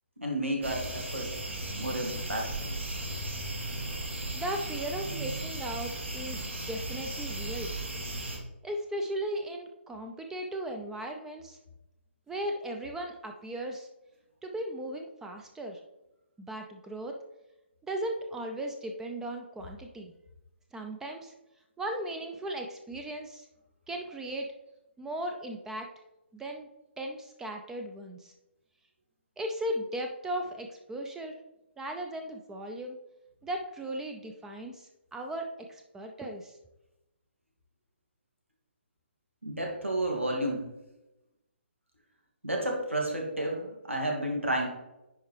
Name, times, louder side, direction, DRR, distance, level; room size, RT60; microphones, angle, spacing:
voice 1, 0.2-1.3 1.8-2.5 39.4-40.7 42.4-44.7, right 1 dB, 90° right, 0 dB, 2.1 m, -31 dB
sound 1, 0.6-8.4, right 1 dB, 70° right, 1.8 m, -36 dB
voice 2, 4.3-7.7 8.6-11.6 12.3-13.9 14.4-15.8 16.4-17.2 17.8-20.1 20.7-21.3 21.8-23.5 23.9-24.5 25.0-25.9 26.3-26.7 27.0-28.3 29.4-31.4 31.8-33.0 33.4-36.6, right 1 dB, 5° right, 3 dB, 0.4 m, -37 dB
10.0 x 4.3 x 3.3 m, 0.95 s
figure-of-eight pair, 135°, 7 cm